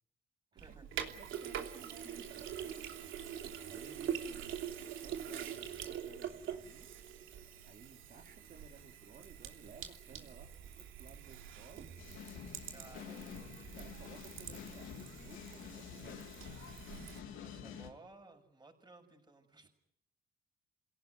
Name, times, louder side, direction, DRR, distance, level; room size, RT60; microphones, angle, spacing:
voice 1, 0.5-0.9 12.7-13.7 17.4-19.7, right 2 dB, 20° right, 4 dB, 7.0 m, -58 dB
Sink (filling or washing), 0.6-17.2, right 9 dB, 85° right, 2.9 m, -45 dB
voice 2, 1.1-2.7 3.6-6.9 7.7-10.5 10.7-11.9 12.8-13.2 13.7-16.4 17.6-17.8, right 5 dB, 45° right, -1 dB, 3.0 m, -57 dB
sound 1, 12.0-17.9, left 8 dB, 90° left, 3.0 m, -49 dB
28.0 x 17.5 x 9.4 m, 0.75 s
cardioid pair, 90°, 20 cm